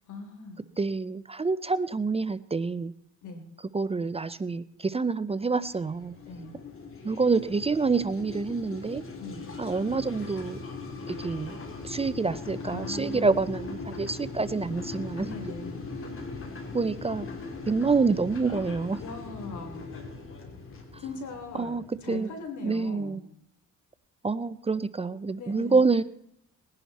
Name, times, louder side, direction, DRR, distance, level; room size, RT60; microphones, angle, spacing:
voice 1, 0.1-0.6 3.2-3.4 6.2-6.5 9.2-9.4 12.6-13.3 15.2-15.7 18.5-19.8 20.7-21.8 22.0-23.2 25.4-25.9, left 3 dB, 75° left, 5 dB, 3.6 m, -40 dB
voice 2, 0.8-2.9 3.7-6.2 7.0-9.0 9.6-10.6 11.1-11.6 11.8-15.3 16.7-17.3 17.7-19.0 20.9-21.0 21.5-22.3 22.6-23.2 24.2-26.0, right 4 dB, 20° right, 15 dB, 0.5 m, -27 dB
sound 1, 5.6-22.2, left 3 dB, 45° left, 3.2 m, -40 dB
20.0 x 10.5 x 4.1 m, 0.73 s
cardioid pair, 90°, 30 cm